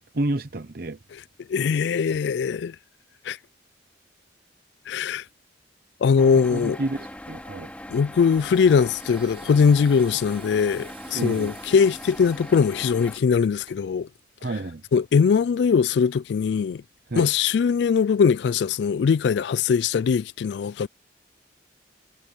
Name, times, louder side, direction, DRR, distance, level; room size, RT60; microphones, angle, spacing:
voice 1, 0.1-1.0 6.2-7.7 11.1-11.5 14.4-14.8 17.1-17.3, right 2 dB, 50° right, 0.8 m, -30 dB
voice 2, 1.5-2.8 3.3-3.4 4.9-5.2 6.0-6.8 7.9-14.1 14.9-16.8 17.1-20.9, left 6 dB, 65° left, 0.3 m, -21 dB
multi kitchen machine, 6.2-13.2, left 1 dB, 5° left, 3.5 m, -40 dB
sound 1, 8.3-13.8, right 7 dB, 30° right, 5.4 m, -50 dB
head